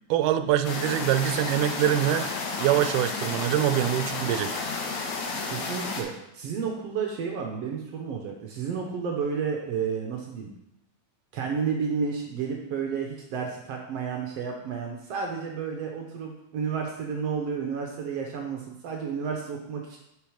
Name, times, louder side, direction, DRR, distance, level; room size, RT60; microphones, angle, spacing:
voice 1, 0.1-4.5, right 12 dB, 85° right, 10 dB, 2.1 m, -24 dB
sound 1, 0.6-6.0, left 4 dB, 75° left, 2.4 m, -32 dB
voice 2, 5.5-10.5 11.3-20.0, right 6 dB, 70° right, 0 dB, 1.6 m, -31 dB
6.5 x 5.3 x 5.0 m, 0.84 s
omnidirectional pair, 3.6 m